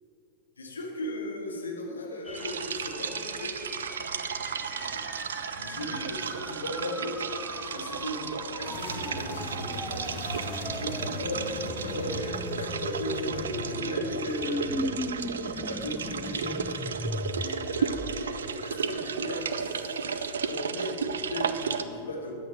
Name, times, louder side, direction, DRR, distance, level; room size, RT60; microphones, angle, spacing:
voice 1, 0.6-3.6 4.4-10.2 10.6-22.4, left 1 dB, 75° left, 0 dB, 2.0 m, -37 dB
sound 1, 2.3-18.5, left 1 dB, 5° left, 0.4 m, -39 dB
sound 2, 2.3-21.8, right 6 dB, 65° right, 0.5 m, -34 dB
sound 3, 8.6-13.8, left 2 dB, 55° left, 2.8 m, -38 dB
14.0 x 10.5 x 4.2 m, 2.8 s
figure-of-eight pair, 90°, 0 cm